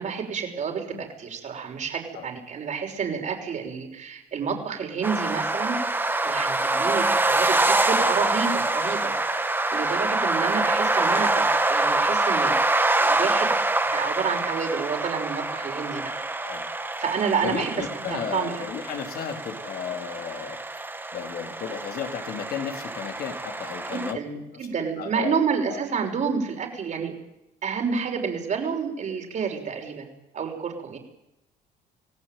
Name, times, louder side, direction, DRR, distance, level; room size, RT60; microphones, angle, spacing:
voice 1, 0.0-5.8 6.2-9.1 9.7-12.5 13.0-13.5 13.9-16.0 17.0-18.6 23.9-27.2 27.6-31.0, right 6 dB, 45° right, 2 dB, 6.0 m, -29 dB
sound 1, 5.0-24.1, right 2 dB, 10° right, 1.9 m, -25 dB
voice 2, 17.4-20.6 21.1-24.2 24.5-24.7 25.0-25.4 25.7-25.8, left 7 dB, 65° left, 4 dB, 3.9 m, -34 dB
26.0 x 17.5 x 9.4 m, 0.87 s
cardioid pair, 110°, 17 cm